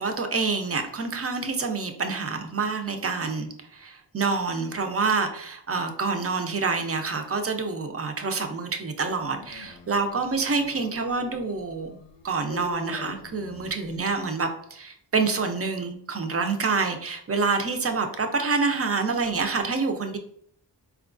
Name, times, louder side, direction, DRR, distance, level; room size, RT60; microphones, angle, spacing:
voice 1, 0.0-12.0 12.2-20.2, right 4 dB, 35° right, 6 dB, 0.4 m, -27 dB
Dog, 9.0-14.1, left 4 dB, 80° left, 0.6 m, -43 dB
4.3 x 2.3 x 2.4 m, 0.66 s
wide cardioid pair, 95°, 44 cm